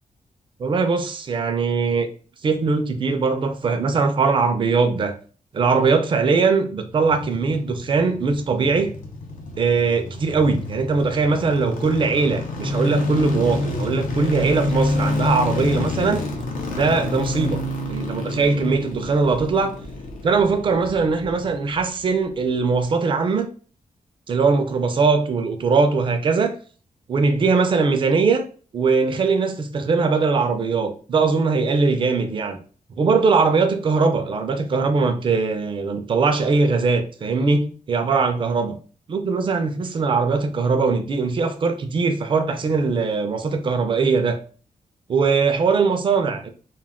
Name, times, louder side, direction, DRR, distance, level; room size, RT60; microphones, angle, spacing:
voice 1, 0.6-2.1 2.4-5.1 5.5-8.9 9.6-16.2 16.7-17.6 17.9-19.8 20.2-23.5 24.3-26.5 27.1-28.4 28.7-32.6 33.0-38.7 39.1-44.4 45.1-46.5, right 4 dB, 40° right, 0.3 m, -20 dB
sound 1, 6.8-22.0 22.3-22.4, left 2 dB, 85° left, 0.5 m, -29 dB
2.2 x 2.1 x 3.4 m
wide cardioid pair, 170°, 14 cm